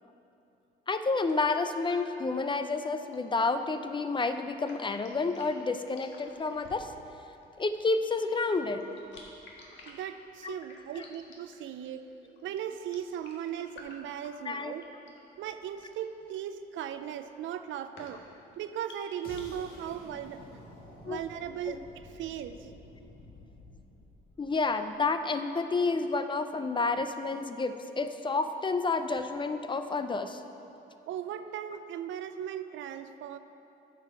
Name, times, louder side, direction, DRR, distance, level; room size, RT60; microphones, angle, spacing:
voice 1, 0.9-6.9 7.6-8.8 10.4-10.6 11.0-11.1 14.4-14.7 21.1-21.2 21.7-21.8 24.4-30.4, left 3 dB, 25° left, 9 dB, 0.5 m, -30 dB
sound 1, 1.2-19.4, left 2 dB, 65° left, 1.5 m, -54 dB
voice 2, 9.9-14.8 15.4-18.2 18.6-20.6 21.1-21.8 22.1-22.7 31.1-33.4, right 9 dB, 75° right, 11 dB, 0.5 m, -38 dB
sound 2, 19.2-25.2, left 2 dB, 45° left, 2.0 m, -51 dB
8.9 x 6.1 x 5.7 m, 2.8 s
cardioid pair, 90°, 20 cm